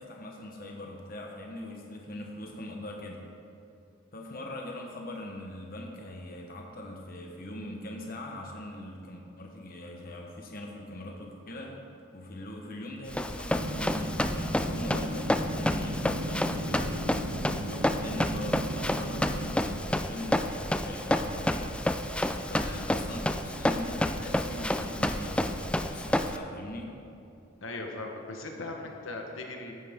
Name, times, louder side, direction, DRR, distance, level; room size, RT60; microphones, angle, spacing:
voice 1, 0.0-3.3 4.1-11.8 12.1-21.8 22.1-22.2 22.5-26.9, left 1 dB, 45° left, 0 dB, 1.1 m, -41 dB
Run, 13.1-26.4, left 1 dB, 5° left, 0.3 m, -30 dB
sound 1, 13.5-19.5, equal, 85° right, 1.2 m, -36 dB
voice 2, 27.6-29.8, left 2 dB, 70° left, 2 dB, 1.2 m, -38 dB
14.5 x 9.2 x 3.6 m, 2.6 s
head